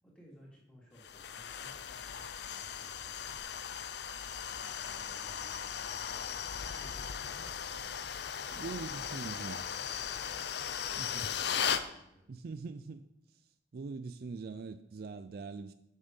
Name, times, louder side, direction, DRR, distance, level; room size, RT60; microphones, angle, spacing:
voice 1, 0.0-3.3 4.5-7.5 8.2-9.4 10.2-12.3, equal, 5° left, -5 dB, 2.6 m, -59 dB
sound 1, 1.0-11.9, left 8 dB, 60° left, 0.5 m, -38 dB
voice 2, 8.5-9.7 11.0-11.3 12.3-13.1 13.3-13.4 13.7-15.7, right 4 dB, 55° right, 11 dB, 0.4 m, -42 dB
8.8 x 6.4 x 5.3 m, 0.83 s
head